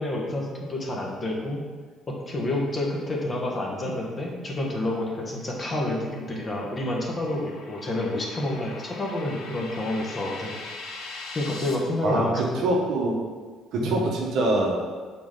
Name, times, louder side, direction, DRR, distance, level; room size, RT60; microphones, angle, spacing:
voice 1, 0.0-1.6 2.1-10.5 11.3-12.7 13.8-14.0, left 1 dB, 30° left, -1 dB, 1.2 m, -29 dB
sound 1, 4.9-11.7, left 3 dB, 80° left, 0.8 m, -42 dB
voice 2, 12.0-13.2 13.7-14.8, right 2 dB, 70° right, -1 dB, 1.2 m, -24 dB
6.1 x 4.3 x 3.7 m, 1.5 s
cardioid pair, 95°, 0 cm